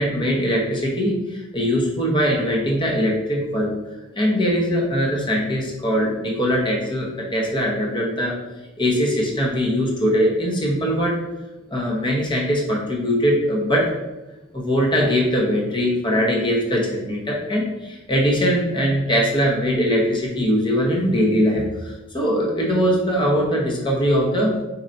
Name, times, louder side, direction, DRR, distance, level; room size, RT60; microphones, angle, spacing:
voice 1, 0.0-3.7 4.2-8.3 8.8-11.2 11.7-13.9 14.5-24.5, equal, 25° left, -2 dB, 0.9 m, -21 dB
4.7 x 4.3 x 2.6 m, 1.1 s
head